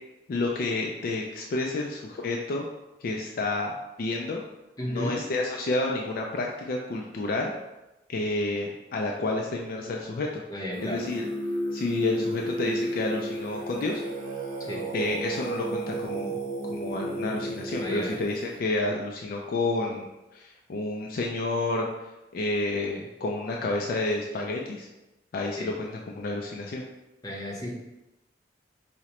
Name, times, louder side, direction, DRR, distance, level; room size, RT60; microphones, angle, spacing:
voice 1, 0.3-2.6 3.0-4.4 4.9-7.5 8.1-11.3 11.7-14.0 14.9-16.4 16.7-20.1 20.3-21.9 22.3-24.9 25.3-26.8, left 2 dB, 55° left, 0 dB, 0.3 m, -30 dB
voice 2, 4.8-5.2 10.5-11.0 14.6-14.9 17.8-18.2 25.6-25.7 27.2-27.9, equal, 20° left, -3 dB, 0.6 m, -33 dB
Singing, 10.7-18.6, right 1 dB, 50° right, 0.6 m, -33 dB
4.8 x 2.1 x 2.9 m, 1.0 s
head